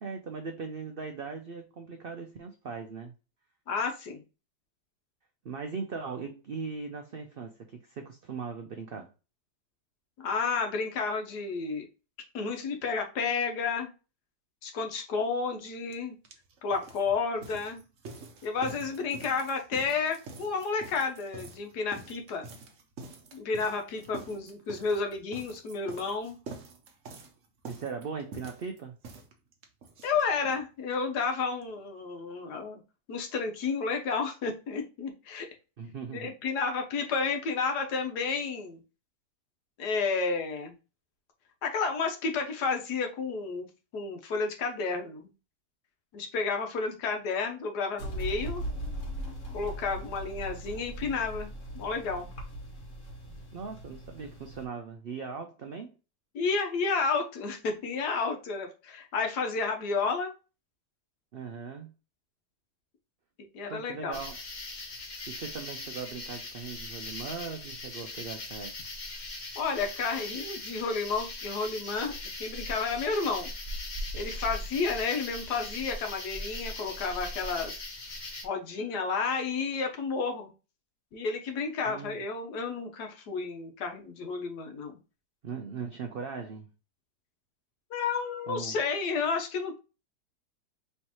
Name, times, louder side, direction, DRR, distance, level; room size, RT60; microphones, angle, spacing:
voice 1, 0.0-3.1 5.4-9.1 27.6-28.9 35.8-36.3 53.5-55.9 61.3-61.9 63.7-64.4 65.3-68.7 81.9-82.2 85.4-86.7 88.5-88.8, right 5 dB, 85° right, 0.5 m, -39 dB
voice 2, 3.7-4.2 10.2-11.9 12.3-13.9 14.6-16.2 16.6-17.8 18.4-22.5 23.3-26.4 30.0-32.8 33.1-35.5 36.1-38.8 39.8-40.7 41.6-43.7 43.9-45.3 46.1-48.6 49.5-52.3 56.3-60.3 63.5-64.2 69.6-72.1 72.4-73.5 74.1-77.8 78.4-80.5 81.1-85.0 87.9-89.8, left 4 dB, 85° left, 1.5 m, -31 dB
sound 1, 15.9-16.0 16.3-30.6 30.9-31.0 31.2-31.3 31.6-31.7, right 4 dB, 55° right, 1.0 m, -47 dB
sound 2, 48.0-54.7, right 1 dB, 55° left, 1.4 m, -39 dB
sound 3, 64.1-78.4, left 2 dB, 40° left, 0.8 m, -40 dB
4.5 x 3.2 x 2.9 m
omnidirectional pair, 1.7 m